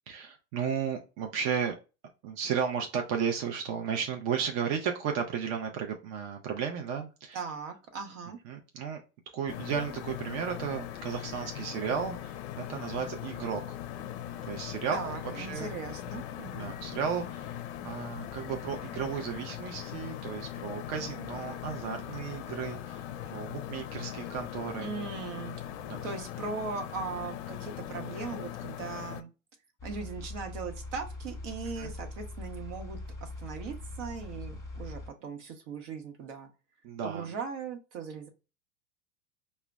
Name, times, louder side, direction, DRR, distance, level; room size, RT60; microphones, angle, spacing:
voice 1, 0.1-1.8 2.2-7.4 8.5-9.0 9.3-13.8 14.4-15.7 16.6-17.6 17.8-24.9 25.9-26.0 31.8-31.9 36.8-37.3, right 7 dB, 40° right, 3 dB, 0.6 m, -34 dB
voice 2, 7.3-8.4 14.9-16.7 24.8-25.6 26.0-29.3 29.8-36.5 37.0-38.3, right 5 dB, 65° right, 4 dB, 1.0 m, -39 dB
sound 1, 9.5-29.2, left 11 dB, 60° left, 0.5 m, -40 dB
sound 2, 29.8-35.1, left 2 dB, 10° left, 1.0 m, -42 dB
4.7 x 2.1 x 2.3 m, 0.31 s
hypercardioid pair, 90°, 39 cm